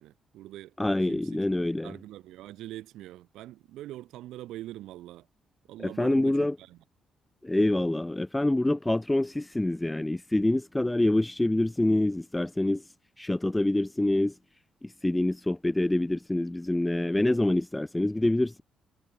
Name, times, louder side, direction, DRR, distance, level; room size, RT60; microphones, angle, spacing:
voice 1, 0.0-0.8 1.0-1.4 1.7-5.3 5.7-6.8, right 14 dB, 90° right, 4.3 m, -43 dB
voice 2, 0.8-1.9 5.8-6.5 7.4-12.8 13.2-14.3 14.8-18.6, left 1 dB, 10° left, 0.4 m, -26 dB
cardioid pair, 90°, 0 cm